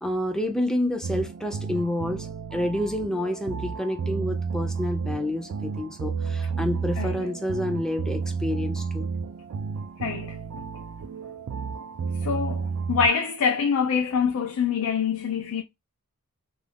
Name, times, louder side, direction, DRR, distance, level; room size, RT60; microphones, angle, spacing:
voice 1, 0.0-9.1, left 1 dB, 5° left, 0.4 m, -29 dB
sound 1, 1.0-13.1, right 5 dB, 80° right, 0.4 m, -31 dB
voice 2, 10.0-10.4 12.2-15.6, left 6 dB, 75° left, 0.4 m, -25 dB
2.4 x 2.3 x 3.3 m
head